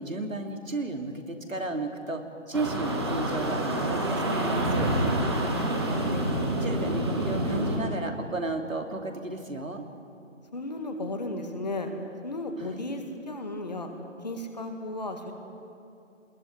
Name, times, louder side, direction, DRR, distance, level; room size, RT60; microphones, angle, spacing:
voice 1, 0.0-4.9 5.9-6.2 6.6-9.8 12.6-12.8, right 2 dB, 80° right, 4 dB, 2.9 m, -33 dB
sound 1, 2.5-7.8, right 1 dB, 20° right, 1.9 m, -27 dB
voice 2, 5.3-6.0 10.5-11.9 12.2-13.9 14.2-15.3, left 2 dB, 35° left, 5 dB, 1.9 m, -35 dB
21.0 x 20.5 x 9.6 m, 2.6 s
figure-of-eight pair, 165°, 39 cm